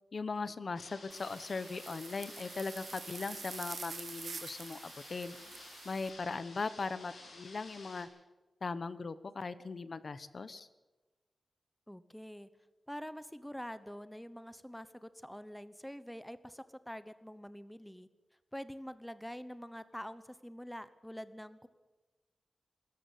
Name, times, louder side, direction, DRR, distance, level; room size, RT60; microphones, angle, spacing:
voice 1, 0.1-5.4 5.8-8.1 8.6-10.7, left 4 dB, 50° left, 15 dB, 1.0 m, -39 dB
sound 1, 0.8-8.0, left 2 dB, 75° left, 7.3 m, -53 dB
sound 2, 1.1-6.1, right 5 dB, 60° right, 2.2 m, -47 dB
voice 2, 11.9-12.5 12.9-18.1 18.5-21.7, equal, 5° left, 14 dB, 1.0 m, -46 dB
23.5 x 13.5 x 9.4 m, 1.2 s
wide cardioid pair, 125°, 0 cm